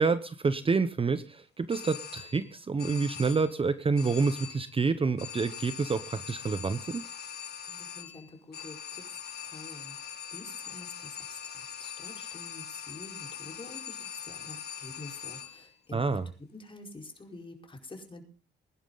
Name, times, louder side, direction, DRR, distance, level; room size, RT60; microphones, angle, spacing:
voice 1, 0.0-7.0 15.9-16.3, right 4 dB, 25° right, 13 dB, 0.9 m, -28 dB
sound 1, 1.7-2.5 2.8-3.6 4.0-4.8 5.2-15.7, left 8 dB, 55° left, 3.2 m, -42 dB
voice 2, 7.7-9.0 9.4-16.2 16.5-18.2, left 2 dB, 25° left, 2 dB, 4.8 m, -47 dB
21.0 x 11.5 x 4.0 m, 0.36 s
cardioid pair, 90°, 20 cm